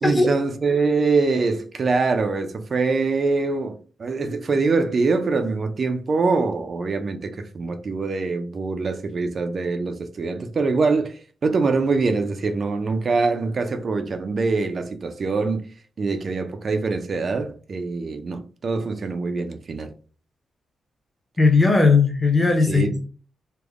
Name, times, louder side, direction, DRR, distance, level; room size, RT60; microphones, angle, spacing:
voice 1, 0.0-15.7 16.0-19.9 22.7-23.1, right 4 dB, 40° right, 0.4 m, -24 dB
voice 2, 21.4-23.1, left 4 dB, 15° left, 0.7 m, -18 dB
3.4 x 2.1 x 3.5 m
wide cardioid pair, 145°, 0 cm